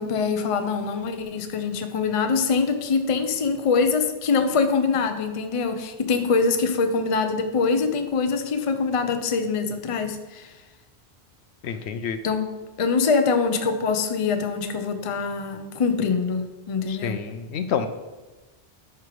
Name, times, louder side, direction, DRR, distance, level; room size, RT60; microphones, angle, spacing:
voice 1, 0.0-10.6 12.2-12.5 12.8-17.2, left 4 dB, 35° left, 7 dB, 0.6 m, -24 dB
voice 2, 11.6-12.2 16.9-17.9, left 7 dB, 75° left, 9 dB, 0.9 m, -28 dB
10.5 x 3.5 x 4.7 m, 1.2 s
omnidirectional pair, 1.2 m